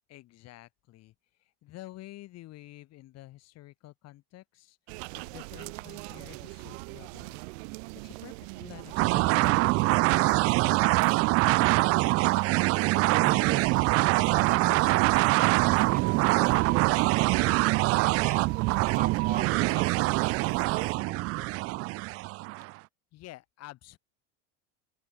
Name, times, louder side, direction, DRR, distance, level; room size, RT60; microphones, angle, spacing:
voice 1, 0.1-1.1 1.4-4.8 5.1-7.4 8.0-11.7 23.1-24.0, left 16 dB, 50° left, 4.6 m, -49 dB
sound 1, 4.9-20.9, right 30 dB, 75° right, 2.9 m, -40 dB
sound 2, 9.0-22.7, right 22 dB, 45° right, 0.5 m, -24 dB
voice 2, 12.9-16.0 16.3-16.9 17.1-17.6 18.0-18.5 18.8-21.5, right 7 dB, 25° right, 3.5 m, -41 dB
open air
supercardioid pair, 125°, 32 cm